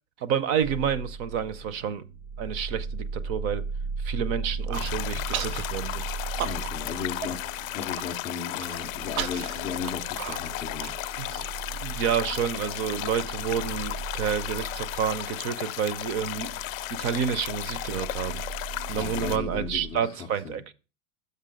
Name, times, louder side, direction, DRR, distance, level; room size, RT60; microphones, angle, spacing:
voice 1, 0.2-2.0 2.4-3.6 4.0-6.0 11.2-11.5 11.8-16.6 16.9-18.4 18.9-20.7, right 8 dB, 35° right, 0.6 m, -29 dB
sound 1, 0.6-19.9, right 4 dB, 70° right, 1.1 m, -37 dB
Human voice, 4.4-4.9 5.3-5.6 6.0-6.9 7.2-7.3 7.7-8.0 8.6-11.4, right 11 dB, 90° right, 0.6 m, -35 dB
sound 2, 4.7-19.4, left 17 dB, 75° left, 0.5 m, -35 dB
voice 2, 6.4-10.9 18.9-20.2 20.4-20.6, left 6 dB, 15° left, 0.3 m, -36 dB
6.7 x 5.5 x 5.1 m
supercardioid pair, 135°, 41 cm